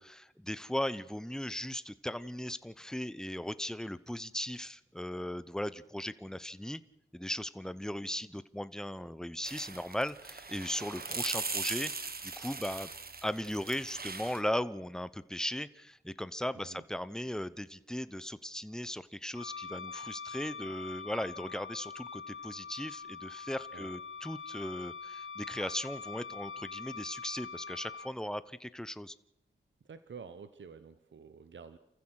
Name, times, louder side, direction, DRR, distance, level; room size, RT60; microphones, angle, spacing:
voice 1, 0.0-6.8 7.1-12.9 13.2-29.1, left 1 dB, 5° left, 15 dB, 0.9 m, -37 dB
sound 1, 9.4-14.4, right 4 dB, 50° right, 1.5 m, -39 dB
Wind instrument woodwind instrument, 19.3-28.1, left 5 dB, 85° left, 1.4 m, -44 dB
voice 2, 29.9-31.8, right 6 dB, 65° right, 11 dB, 1.0 m, -49 dB
29.0 x 14.5 x 6.5 m, 0.84 s
cardioid pair, 65°, 21 cm